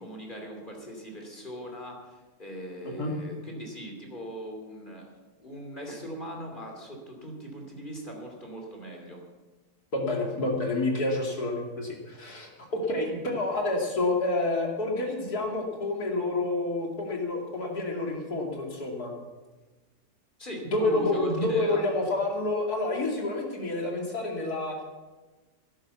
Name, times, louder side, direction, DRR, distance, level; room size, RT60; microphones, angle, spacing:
voice 1, 0.0-5.1 5.4-9.2 20.4-21.9, equal, 30° left, 1 dB, 3.1 m, -39 dB
voice 2, 9.9-19.1 20.7-24.8, left 2 dB, 80° left, 0 dB, 3.3 m, -28 dB
12.5 x 10.5 x 7.1 m, 1.2 s
omnidirectional pair, 1.6 m